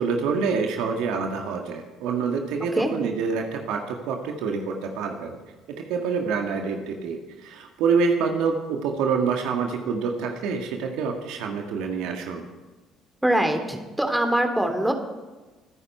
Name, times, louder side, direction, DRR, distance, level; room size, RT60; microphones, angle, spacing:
voice 1, 0.0-5.4 5.7-12.5, right 5 dB, 65° right, 3 dB, 1.8 m, -26 dB
voice 2, 13.2-14.9, right 1 dB, 5° right, 5 dB, 2.8 m, -23 dB
24.5 x 10.0 x 4.5 m, 1.2 s
figure-of-eight pair, 50°, 0 cm